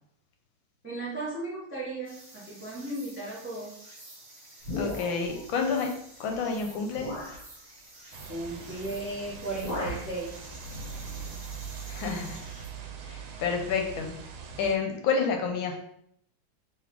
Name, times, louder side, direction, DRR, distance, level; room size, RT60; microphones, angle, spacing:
voice 1, 0.8-3.8 8.3-10.3, right 2 dB, 15° right, -5 dB, 0.4 m, -35 dB
sound 1, 2.0-12.7, right 1 dB, 40° right, 2.0 m, -50 dB
sound 2, 4.6-5.4 6.3-6.4 6.9-7.4 8.8-9.1 9.3-10.1, left 2 dB, 40° left, 2.0 m, -35 dB
voice 2, 4.8-5.9 6.2-7.1 11.9-12.4 13.1-14.2 14.6-15.8, left 5 dB, 75° left, 3 dB, 1.4 m, -29 dB
sound 3, 8.1-14.8, right 5 dB, 90° right, 1.5 m, -42 dB
4.0 x 3.5 x 3.0 m, 0.71 s
omnidirectional pair, 2.3 m